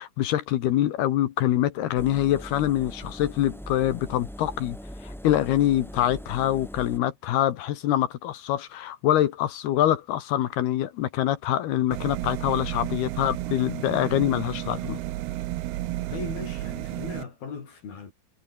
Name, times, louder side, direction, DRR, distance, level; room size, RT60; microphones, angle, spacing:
voice 1, 0.0-4.8 5.0-15.0, left 12 dB, 65° left, 2.7 m, -25 dB
Engine, 1.9-7.0, equal, ahead, 2.3 m, -41 dB
sound 1, 11.9-17.2, right 16 dB, 80° right, 2.3 m, -32 dB
voice 2, 16.1-18.1, left 6 dB, 50° left, 5.5 m, -38 dB
omnidirectional pair, 5.9 m